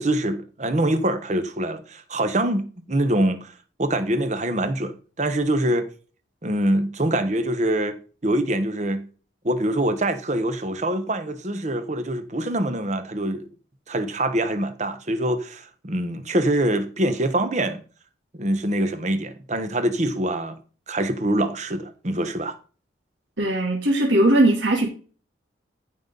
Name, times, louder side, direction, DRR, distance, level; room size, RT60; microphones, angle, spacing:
voice 1, 0.0-3.5 3.8-5.9 6.4-9.1 9.4-13.4 13.9-17.8 18.3-20.6 20.9-22.6, right 1 dB, 40° right, 1.1 m, -24 dB
voice 2, 23.4-24.9, right 1 dB, 85° right, 2.8 m, -19 dB
14.5 x 5.7 x 4.0 m
head